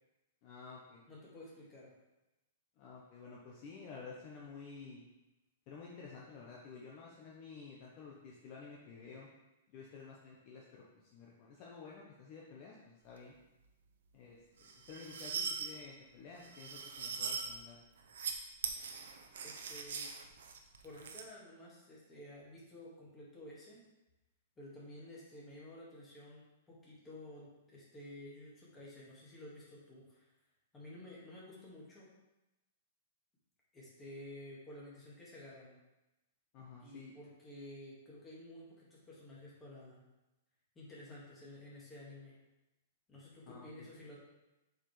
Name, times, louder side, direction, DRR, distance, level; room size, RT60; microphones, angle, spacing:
voice 1, 0.4-1.1 2.8-5.0 5.7-9.3 9.7-13.3 14.1-17.8 36.5-37.1 43.5-43.9, left 5 dB, 35° left, -3 dB, 0.9 m, -52 dB
voice 2, 1.1-1.9 19.4-20.1 20.8-23.8 24.6-30.3 30.7-32.1 33.7-35.8 36.8-40.0 40.8-42.3 43.1-44.2, left 1 dB, 10° left, -6 dB, 1.9 m, -52 dB
sound 1, 14.6-15.7 16.4-17.5 18.0-18.3 18.6-21.2, right 6 dB, 80° right, 0.8 m, -41 dB
7.6 x 4.9 x 3.3 m, 0.99 s
hypercardioid pair, 160°, 0 cm